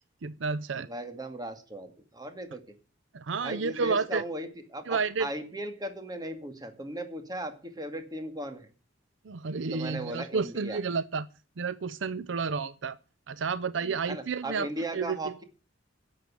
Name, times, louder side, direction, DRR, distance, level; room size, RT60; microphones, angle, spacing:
voice 1, 0.0-0.9 3.1-4.2 4.9-5.3 9.2-11.3 11.6-13.0 13.3-14.7 14.9-15.3, right 5 dB, 70° right, 0.6 m, -31 dB
voice 2, 0.9-2.6 3.4-8.7 9.7-10.8 14.1-15.4, right 1 dB, 20° right, 2.2 m, -37 dB
11.5 x 7.5 x 8.6 m
head